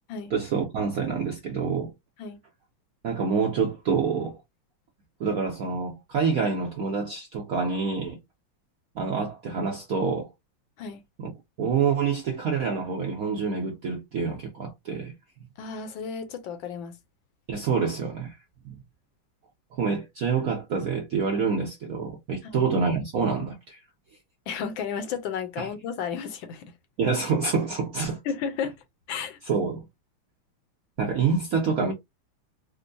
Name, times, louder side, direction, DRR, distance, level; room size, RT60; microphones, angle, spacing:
voice 1, 0.3-1.9 3.0-4.4 5.2-8.2 8.9-10.3 11.2-11.3 11.6-15.1 17.5-18.4 18.6-18.8 19.8-23.8 25.6-25.7 27.0-28.2 29.5-29.9 31.0-31.9, right 5 dB, 70° right, 0.8 m, -27 dB
voice 2, 15.6-17.0 22.4-22.7 24.5-26.7 28.2-28.7 29.1-29.4, left 6 dB, 70° left, 1.3 m, -33 dB
4.3 x 2.0 x 2.6 m
omnidirectional pair, 2.4 m